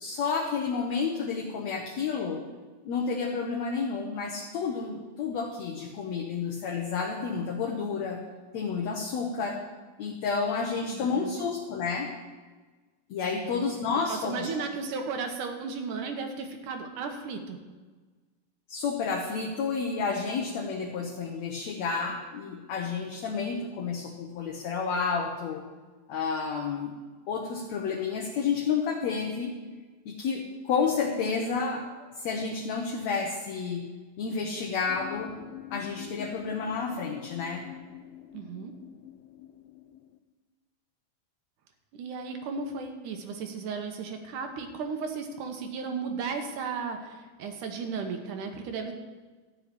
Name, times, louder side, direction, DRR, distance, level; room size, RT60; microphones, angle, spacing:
voice 1, 0.0-2.4 2.8-8.2 8.5-9.6 10.0-12.1 13.1-14.5 18.7-25.7 26.1-27.0 27.3-29.5 30.1-31.9 32.2-33.9 34.2-35.4 35.7-37.6, left 5 dB, 65° left, 1 dB, 1.9 m, -30 dB
voice 2, 10.9-11.3 13.3-13.7 14.1-17.6 38.3-38.7 41.9-48.9, right 5 dB, 70° right, 5 dB, 2.4 m, -35 dB
sound 1, 34.9-40.2, left 13 dB, 85° left, 2.4 m, -45 dB
13.5 x 5.6 x 9.0 m, 1.3 s
omnidirectional pair, 4.0 m